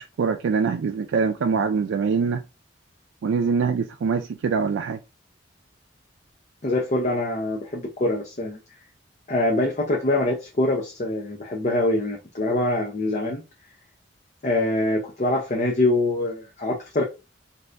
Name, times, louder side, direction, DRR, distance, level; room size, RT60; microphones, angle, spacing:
voice 1, 0.0-2.4 3.2-5.0, right 5 dB, 90° right, 0.3 m, -24 dB
voice 2, 6.6-8.6 9.3-13.4 14.4-17.0, left 2 dB, 40° left, 0.6 m, -24 dB
2.6 x 2.5 x 3.2 m
head